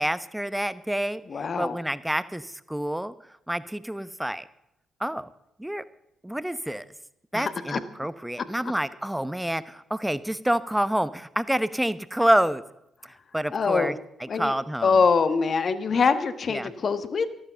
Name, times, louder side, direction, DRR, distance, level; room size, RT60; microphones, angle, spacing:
voice 1, 0.0-1.2 1.6-3.1 3.5-4.4 5.0-5.3 5.6-5.8 6.2-6.8 7.3-12.6 13.3-15.0 16.5-16.7, right 1 dB, 5° right, 14 dB, 0.9 m, -27 dB
voice 2, 1.3-1.8 7.3-7.8 13.5-13.9 14.3-14.5 14.8-17.3, left 5 dB, 50° left, 11 dB, 1.3 m, -24 dB
13.0 x 12.5 x 5.7 m, 0.82 s
hypercardioid pair, 40°, 0 cm